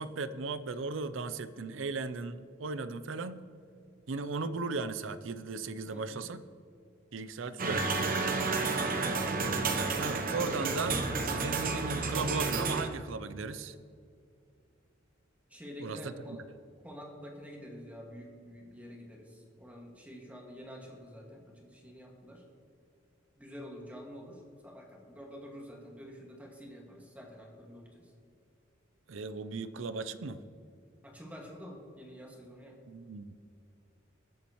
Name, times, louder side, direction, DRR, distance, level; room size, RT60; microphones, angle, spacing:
voice 1, 0.0-3.4 4.1-6.4 7.1-7.9 9.7-13.8 15.8-16.4 29.1-30.4 32.9-33.4, right 3 dB, 70° right, 13 dB, 0.6 m, -37 dB
voice 2, 5.9-6.3 8.7-9.3 15.5-16.4 16.8-22.5 23.4-28.1 31.0-32.8, equal, 10° right, -1 dB, 1.9 m, -48 dB
sound 1, 7.6-12.9, right 4 dB, 45° right, 0.9 m, -31 dB
20.5 x 7.3 x 3.1 m, 2.4 s
head